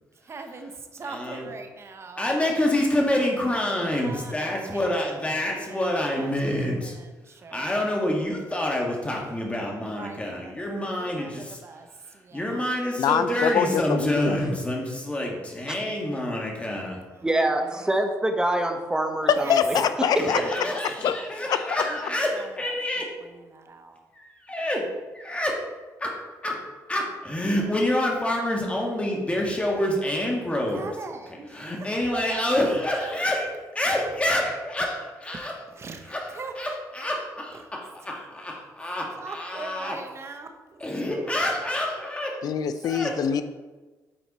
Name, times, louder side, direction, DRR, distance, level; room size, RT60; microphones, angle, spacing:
voice 1, 0.3-2.4 3.8-5.1 5.5-7.8 9.8-12.6 16.8-17.9 19.3-19.6 20.1-21.2 21.8-22.7 23.2-24.0 30.7-32.4 33.0-33.1 35.3-35.4 35.7-36.8 37.5-37.7 38.0-38.3 39.1-41.4 43.3-43.4, right 4 dB, 40° right, 6 dB, 1.0 m, -41 dB
voice 2, 1.1-1.5 2.2-7.0 7.5-11.6 12.3-17.0 20.1-23.1 24.1-24.9 25.1-25.6 26.0-26.1 26.4-26.6 26.9-30.8 31.5-33.5 33.8-34.9 35.2-35.5 36.1-36.3 36.6-40.0 40.8-42.4 42.8-43.1, left 1 dB, 20° left, -1 dB, 1.7 m, -27 dB
voice 3, 13.0-14.4 19.3-20.4 21.0-21.2 21.5-21.8 42.4-43.4, left 8 dB, 70° left, 11 dB, 0.5 m, -24 dB
voice 4, 17.2-19.8 20.1-20.3, right 1 dB, 10° right, 5 dB, 1.0 m, -25 dB
8.7 x 4.5 x 4.3 m, 1.2 s
cardioid pair, 85°, 7 cm